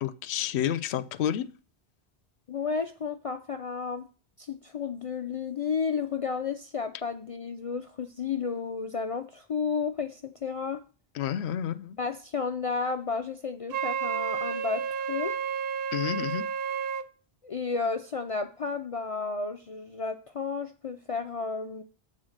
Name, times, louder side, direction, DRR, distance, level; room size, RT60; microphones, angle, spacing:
voice 1, 0.0-1.5 11.2-12.0 15.9-16.5, left 10 dB, 80° left, 0.8 m, -30 dB
voice 2, 2.5-4.1 4.4-10.8 12.0-15.4 17.4-21.8, left 5 dB, 50° left, 0.4 m, -32 dB
Wind instrument woodwind instrument, 13.7-17.1, right 7 dB, 65° right, 0.8 m, -31 dB
7.5 x 4.1 x 6.4 m
omnidirectional pair, 1.1 m